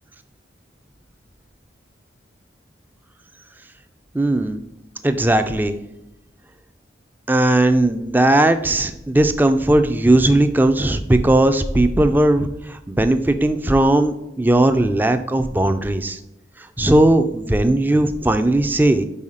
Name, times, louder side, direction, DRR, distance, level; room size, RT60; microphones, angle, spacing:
voice 1, 4.1-4.6 5.0-5.8 7.3-16.2 16.8-19.0, right 1 dB, 10° right, 9 dB, 0.3 m, -17 dB
5.6 x 4.6 x 4.9 m, 0.91 s
head